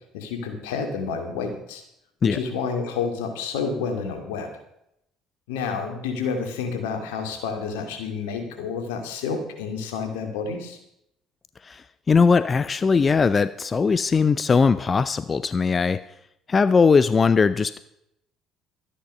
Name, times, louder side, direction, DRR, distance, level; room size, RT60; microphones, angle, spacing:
voice 1, 0.1-1.8 2.2-4.5 5.5-10.8, left 5 dB, 85° left, 5 dB, 2.4 m, -29 dB
voice 2, 12.1-16.0 16.5-17.8, left 5 dB, 35° left, 15 dB, 0.5 m, -19 dB
13.0 x 10.0 x 5.5 m, 0.78 s
supercardioid pair, 70°, 0 cm